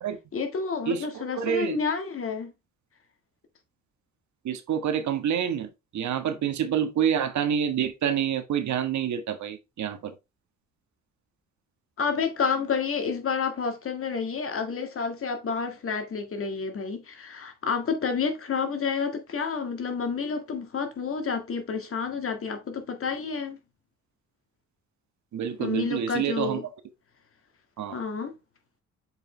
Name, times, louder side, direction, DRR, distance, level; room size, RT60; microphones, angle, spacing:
voice 1, 0.3-2.5 12.0-23.6 25.6-26.7 27.9-28.4, left 5 dB, 45° left, 1.9 m, -29 dB
voice 2, 0.9-1.8 4.4-10.1 25.3-26.6 27.8-28.0, right 9 dB, 70° right, 1.6 m, -28 dB
7.3 x 5.2 x 3.3 m
cardioid pair, 90°, 30 cm